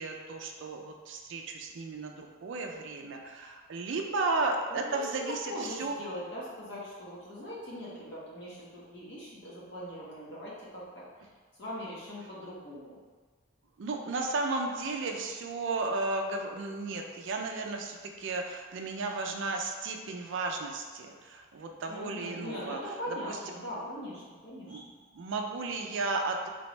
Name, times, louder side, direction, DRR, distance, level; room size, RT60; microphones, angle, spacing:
voice 1, 0.0-5.9 13.8-22.8 23.1-23.4 24.6-24.8 25.1-26.5, right 3 dB, 60° right, 3 dB, 0.4 m, -34 dB
voice 2, 4.7-5.0 5.4-11.3 11.6-13.0 21.9-24.9, equal, 55° left, -7 dB, 1.1 m, -41 dB
3.4 x 3.1 x 3.1 m, 1.4 s
head